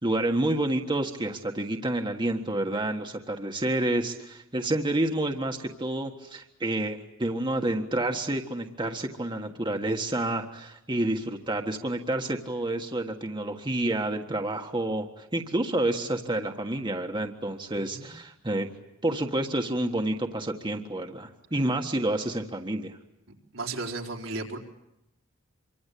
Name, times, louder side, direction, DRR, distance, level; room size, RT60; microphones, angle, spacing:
voice 1, 0.0-18.7 19.0-23.0, right 1 dB, 25° right, 3 dB, 1.6 m, -29 dB
voice 2, 23.5-24.6, right 3 dB, 80° right, 2 dB, 4.1 m, -34 dB
27.0 x 24.5 x 8.5 m, 0.88 s
head